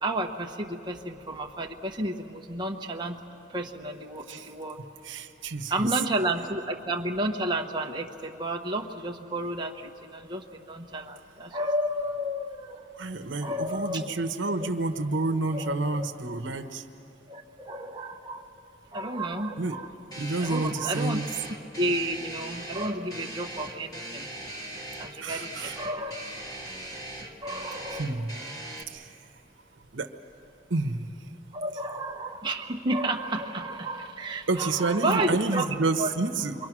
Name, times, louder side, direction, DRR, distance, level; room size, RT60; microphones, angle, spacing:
voice 1, 0.0-3.2 3.5-4.8 5.7-12.9 13.4-14.6 15.5-16.1 17.3-18.5 18.9-19.9 20.4-21.2 21.8-24.3 25.0-26.2 27.4-28.2 31.5-35.7 36.0-36.1, right 1 dB, 25° right, 1 dB, 1.1 m, -31 dB
voice 2, 5.0-5.8 13.0-16.8 19.6-19.8 20.1-21.3 25.2-25.8 27.9-28.3 28.9-29.1 29.9-30.1 30.7-31.1 34.5-36.5, right 3 dB, 80° right, 7 dB, 1.0 m, -29 dB
sound 1, 20.1-28.8, right 1 dB, 20° left, 1.6 m, -40 dB
26.5 x 23.0 x 6.1 m, 2.8 s
head